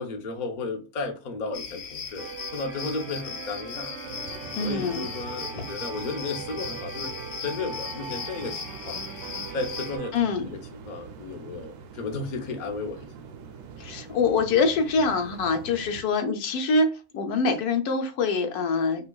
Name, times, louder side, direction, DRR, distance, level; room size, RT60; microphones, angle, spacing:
voice 1, 0.0-3.9 4.6-7.1 7.4-9.0 9.5-13.1, left 3 dB, 45° left, 0.6 m, -34 dB
sound 1, 1.5-10.0, left 6 dB, 65° left, 1.2 m, -38 dB
sound 2, 2.2-10.1, right 6 dB, 65° right, 0.8 m, -40 dB
sound 3, 4.0-16.0, right 6 dB, 85° right, 1.1 m, -44 dB
voice 2, 4.6-5.1 5.6-5.7 10.1-10.5 13.8-19.1, left 4 dB, 85° left, 1.2 m, -25 dB
5.2 x 2.3 x 2.3 m
omnidirectional pair, 1.6 m